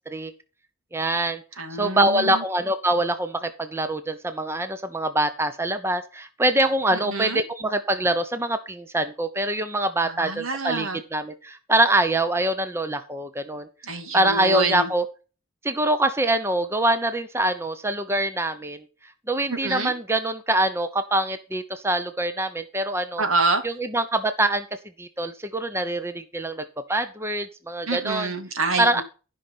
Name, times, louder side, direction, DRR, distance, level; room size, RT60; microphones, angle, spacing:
voice 1, 0.9-1.4 1.7-13.7 14.1-15.0 15.6-18.8 19.3-23.2 23.6-24.6 25.0-28.3 28.8-29.0, right 1 dB, 10° right, 10 dB, 0.8 m, -24 dB
voice 2, 1.6-2.4 6.9-7.4 10.0-11.0 13.8-14.9 19.5-19.9 23.2-23.6 27.9-29.0, right 3 dB, 90° right, 7 dB, 2.3 m, -27 dB
13.5 x 5.6 x 5.5 m, 0.34 s
head